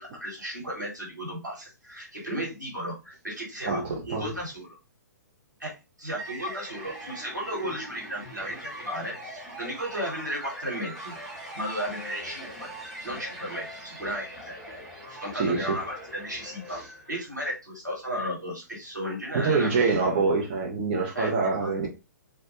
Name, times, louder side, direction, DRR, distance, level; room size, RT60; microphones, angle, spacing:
voice 1, 0.0-4.8 5.6-5.7 6.0-11.1 11.5-12.7 13.0-14.5 15.1-19.8 21.1-21.3 21.6-21.7, equal, 85° right, 1.3 m, -34 dB
voice 2, 3.6-4.3 15.3-15.8 16.7-16.8 19.3-21.9, right 4 dB, 35° right, 0.6 m, -25 dB
sound 1, 6.2-17.3, right 1 dB, ahead, 0.9 m, -42 dB
2.3 x 2.1 x 2.8 m
figure-of-eight pair, 120°, 10 cm